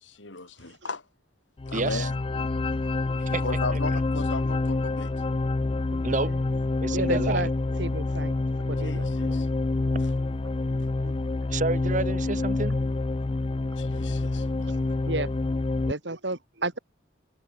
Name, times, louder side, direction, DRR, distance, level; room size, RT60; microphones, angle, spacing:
voice 1, 0.0-1.0 1.7-2.1 3.3-5.1 8.8-9.5 13.7-14.5, left 3 dB, 90° left, 3.0 m, -36 dB
sound 1, 1.6-15.9, left 2 dB, 30° left, 0.4 m, -27 dB
voice 2, 1.7-2.1 3.3-3.4 3.7-3.8 6.0-6.3 6.8-7.5 11.5-12.8, right 3 dB, 45° right, 1.3 m, -29 dB
voice 3, 5.9-6.3 6.9-7.5 7.8-9.4 11.0-11.1 15.0-15.3 15.8-16.8, right 2 dB, 70° right, 3.2 m, -33 dB
head